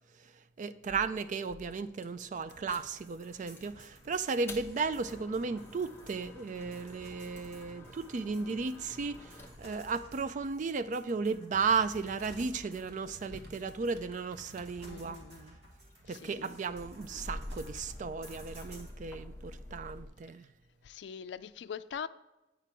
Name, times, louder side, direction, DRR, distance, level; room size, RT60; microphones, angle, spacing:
voice 1, 0.6-15.6 16.1-20.5, right 4 dB, 45° right, 0.4 m, -35 dB
sound 1, 0.9-3.8 4.2-11.0 11.7-14.4 14.7-20.1, left 1 dB, 15° left, 0.9 m, -49 dB
sound 2, 2.5-18.9, equal, 85° right, 2.0 m, -55 dB
sound 3, 9.3-15.0, right 1 dB, 65° right, 1.1 m, -57 dB
voice 2, 14.9-15.4 16.1-16.4 20.8-22.1, left 7 dB, 80° left, 0.3 m, -42 dB
9.1 x 5.0 x 4.4 m
head